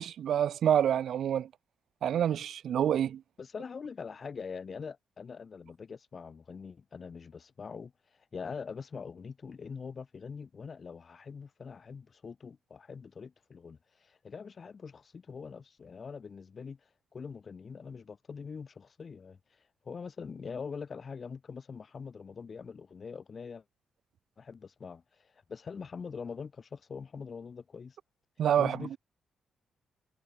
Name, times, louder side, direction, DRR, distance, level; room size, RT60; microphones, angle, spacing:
voice 1, 0.0-1.5 2.0-3.2 28.4-28.9, right 9 dB, 65° right, 0.5 m, -27 dB
voice 2, 3.4-7.9 8.3-16.8 17.1-19.6 19.8-23.6 24.4-28.0 28.6-29.0, left 5 dB, 35° left, 1.5 m, -43 dB
wide cardioid pair, 155°, 0 cm